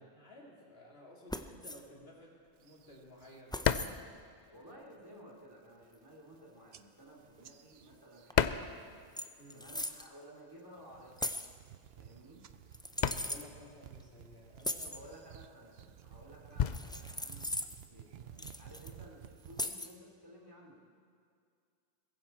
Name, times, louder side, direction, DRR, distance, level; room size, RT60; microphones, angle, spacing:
voice 1, 0.0-3.7 4.4-4.6 9.4-9.7 13.0-14.9, left 1 dB, 75° left, -3 dB, 3.1 m, -55 dB
sound 1, 1.3-1.8 3.5-3.9 5.9-6.0 8.3-8.4 8.6-8.8 9.2-10.1 11.2-11.6 12.7-13.4 14.6-15.0 16.7-17.9 18.4-18.9 19.6-19.9, left 1 dB, 5° left, 0.3 m, -39 dB
sound 2, 1.9-5.2 5.4-9.6 9.8-18.6, left 8 dB, 55° left, 0.6 m, -37 dB
sound 3, 2.6-3.4 3.8-4.2 4.6-4.9 5.4-5.5 5.7-6.4 6.7-9.3 9.5-10.1 10.6-19.6, right 9 dB, 75° right, 0.9 m, -55 dB
voice 2, 4.5-9.0 9.5-11.4 12.0-12.5 14.8-20.8, equal, 20° right, -3 dB, 3.1 m, -55 dB
21.0 x 15.5 x 4.4 m, 2.3 s
omnidirectional pair, 1.0 m